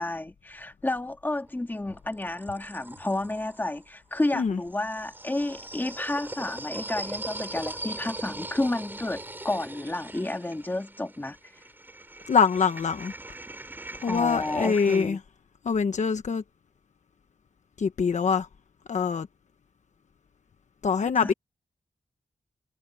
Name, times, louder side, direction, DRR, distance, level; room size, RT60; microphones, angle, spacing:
voice 1, 0.0-11.4 14.0-15.2 21.2-21.3, left 2 dB, 15° left, 1.8 m, -31 dB
sound 1, 1.4-3.8 4.6-15.0, right 2 dB, 15° right, 3.9 m, -41 dB
voice 2, 12.3-13.1 14.0-15.2 15.6-16.4 17.8-18.5 18.9-19.3 20.8-21.3, left 5 dB, 60° left, 1.2 m, -24 dB
wide cardioid pair, 180°, 14 cm